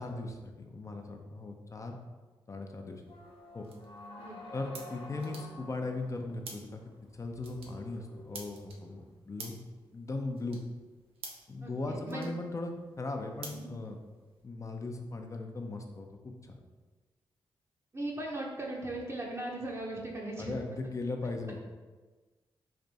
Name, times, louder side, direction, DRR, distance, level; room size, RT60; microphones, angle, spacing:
voice 1, 0.0-2.0 2.5-3.0 3.5-3.7 4.5-6.8 7.1-9.6 9.9-10.6 11.5-14.0 14.4-16.6 20.4-21.6, left 2 dB, 35° left, 4 dB, 0.6 m, -38 dB
sound 1, 2.9-14.4, right 3 dB, 85° right, 0.5 m, -52 dB
sound 2, 3.1-9.1, left 2 dB, 60° left, 0.8 m, -50 dB
voice 2, 11.6-12.3 13.5-13.7 17.9-20.6, right 1 dB, 30° right, -3 dB, 0.7 m, -38 dB
3.3 x 2.6 x 4.0 m, 1.3 s
cardioid pair, 55°, 9 cm